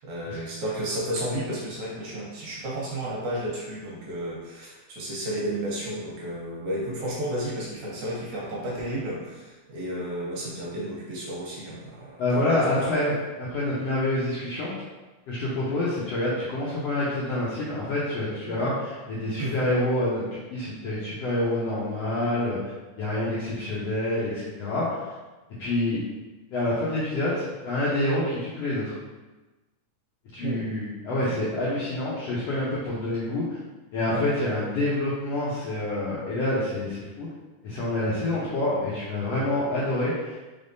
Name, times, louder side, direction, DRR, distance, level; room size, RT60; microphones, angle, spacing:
voice 1, 0.0-12.9 18.4-18.7 19.4-19.7 30.4-30.7 31.2-31.4 34.0-34.3, right 1 dB, 70° right, -5 dB, 2.0 m, -32 dB
voice 2, 12.2-14.7 15.3-22.7 23.0-25.1 25.6-26.0 26.5-29.0 30.3-33.6 33.9-37.3 37.6-40.4, left 1 dB, 75° left, -8 dB, 1.5 m, -27 dB
4.7 x 3.5 x 2.6 m, 1.2 s
omnidirectional pair, 3.8 m